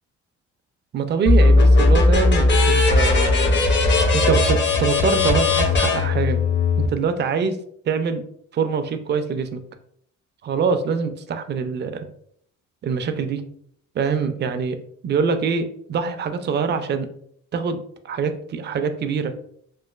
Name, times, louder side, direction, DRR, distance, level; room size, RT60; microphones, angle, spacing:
voice 1, 0.9-3.6 4.1-6.4 6.8-7.6 7.9-8.2 8.5-9.6 10.4-12.1 12.8-13.4 13.9-14.8 15.0-17.1 17.5-17.8 18.0-19.3, right 5 dB, 35° right, 8 dB, 0.4 m, -24 dB
sound 1, 1.3-6.9, left 2 dB, 40° left, 0.6 m, -17 dB
3.0 x 2.4 x 2.3 m, 0.67 s
cardioid pair, 90°, 30 cm